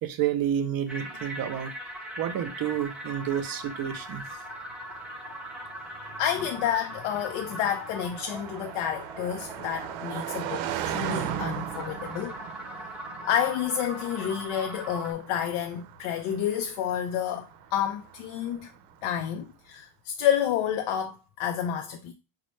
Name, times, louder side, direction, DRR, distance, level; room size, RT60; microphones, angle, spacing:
voice 1, 0.0-1.7 2.2-4.2, right 10 dB, 45° right, 0.6 m, -29 dB
sound 1, 0.9-15.1, equal, ahead, 0.7 m, -41 dB
Car passing by, 2.7-19.1, right 10 dB, 90° right, 0.5 m, -39 dB
voice 2, 6.2-10.6 10.9-12.3 13.3-18.7 19.0-22.1, left 9 dB, 75° left, 0.5 m, -29 dB
4.0 x 2.2 x 3.1 m
supercardioid pair, 100°, 49 cm